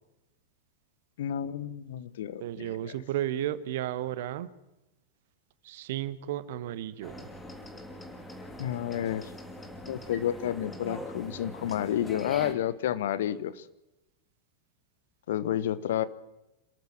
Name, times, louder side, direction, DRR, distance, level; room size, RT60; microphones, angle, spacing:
voice 1, 1.2-2.9 8.6-9.3 9.8-13.7 15.3-16.1, left 11 dB, 60° left, 15 dB, 1.1 m, -30 dB
voice 2, 2.4-4.5 5.6-7.3, right 12 dB, 55° right, 15 dB, 1.2 m, -33 dB
sound 1, 7.0-12.5, left 1 dB, 10° left, 2.9 m, -43 dB
27.0 x 14.0 x 7.5 m, 0.93 s
figure-of-eight pair, 90°, 0 cm